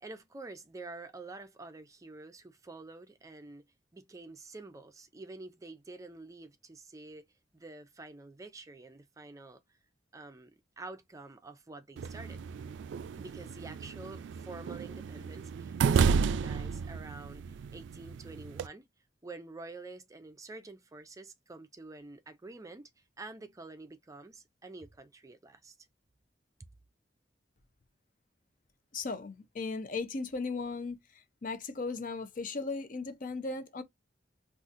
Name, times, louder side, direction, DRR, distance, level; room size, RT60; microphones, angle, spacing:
voice 1, 0.0-3.7 3.9-7.2 7.5-9.8 10.1-12.4 13.1-18.9 19.2-22.9 23.2-25.7, right 3 dB, 20° right, 0.4 m, -48 dB
sound 1, 12.0-18.7, right 6 dB, 90° right, 0.3 m, -32 dB
voice 2, 28.9-31.0 31.4-33.8, left 3 dB, 50° left, 0.6 m, -36 dB
3.9 x 2.4 x 2.5 m
head